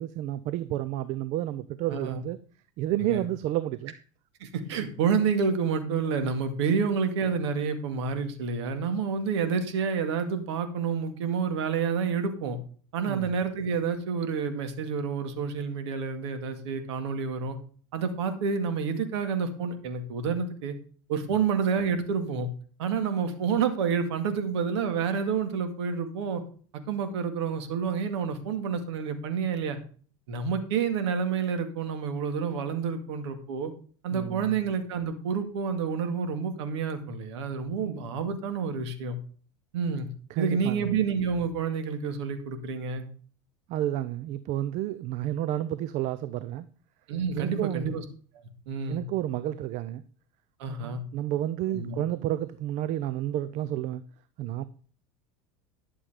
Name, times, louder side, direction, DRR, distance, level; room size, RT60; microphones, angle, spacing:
voice 1, 0.0-2.4 2.8-3.9 13.1-13.3 34.1-34.6 40.3-41.0 43.7-46.7 47.3-48.0 48.9-50.0 50.7-54.0 54.4-54.6, right 13 dB, 55° right, 15 dB, 0.7 m, -31 dB
voice 2, 1.9-2.2 3.0-3.2 4.4-12.6 12.9-17.6 17.9-20.7 21.1-22.5 22.8-26.4 26.7-29.8 30.3-33.7 34.0-39.2 39.7-40.1 40.4-43.0 47.1-48.0 48.7-49.0 50.6-51.0 51.7-52.0, right 6 dB, 75° right, 8 dB, 2.2 m, -29 dB
12.0 x 7.1 x 5.0 m, 0.42 s
hypercardioid pair, 85°, 15 cm